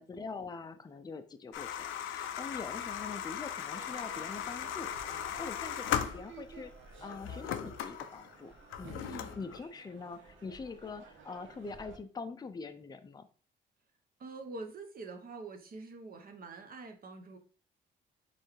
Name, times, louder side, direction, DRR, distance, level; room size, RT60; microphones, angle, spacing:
voice 1, 0.0-6.7 7.0-8.5 8.8-13.3, left 4 dB, 20° left, 8 dB, 0.5 m, -44 dB
sound 1, 1.5-6.6 7.1-9.6, left 10 dB, 85° left, 0.5 m, -38 dB
Crowd / Fireworks, 3.7-12.0, right 4 dB, 70° right, 0.9 m, -53 dB
voice 2, 8.9-9.4 14.2-17.4, right 3 dB, 45° right, 5 dB, 0.9 m, -45 dB
4.4 x 3.3 x 3.2 m, 0.41 s
cardioid pair, 90°, 20 cm